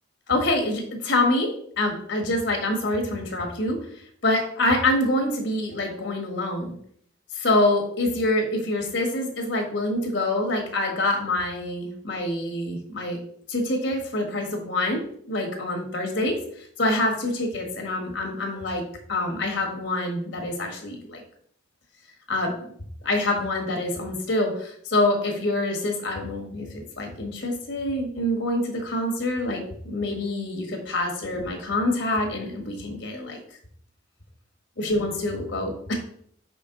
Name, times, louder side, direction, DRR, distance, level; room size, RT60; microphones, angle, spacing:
voice 1, 0.3-1.5 1.8-3.8 4.2-6.8 7.3-13.2 13.5-15.0 15.3-18.8 19.1-21.2 22.3-22.7 23.0-26.7 27.0-33.4 34.8-35.9, left 1 dB, 60° left, 1 dB, 1.5 m, -26 dB
5.5 x 5.3 x 3.8 m, 0.63 s
head